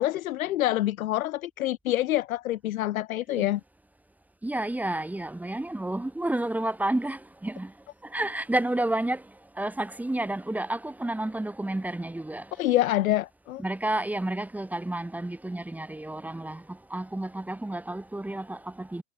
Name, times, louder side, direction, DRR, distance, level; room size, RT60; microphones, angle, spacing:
voice 1, 0.0-3.6 12.5-13.6, left 14 dB, 65° left, 1.8 m, -26 dB
voice 2, 4.4-7.7 8.0-9.2 9.6-12.5 13.6-19.0, right 1 dB, 5° right, 2.0 m, -30 dB
hypercardioid pair, 125°, 45 cm